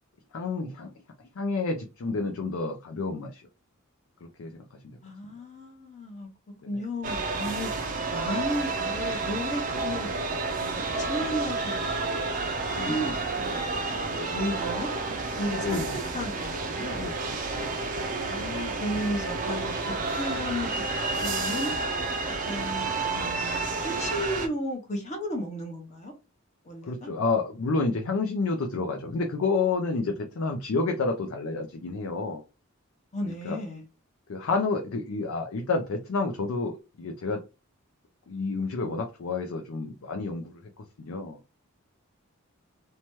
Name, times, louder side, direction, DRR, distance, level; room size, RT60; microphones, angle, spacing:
voice 1, 0.3-0.9 1.4-3.4 4.4-4.5 12.8-13.1 15.6-15.9 16.9-17.1 17.6-17.7 26.9-32.4 33.3-33.6 34.3-37.4 38.3-41.4, left 3 dB, 70° left, 0.5 m, -29 dB
voice 2, 5.0-6.3 6.7-14.9 15.4-15.8 16.1-17.1 18.2-20.7 21.0-21.7 22.4-26.1 26.6-27.1 33.1-33.9, equal, 30° left, 0.8 m, -34 dB
sound 1, 7.0-24.5, right 3 dB, 40° right, 0.4 m, -30 dB
2.8 x 2.2 x 3.0 m
head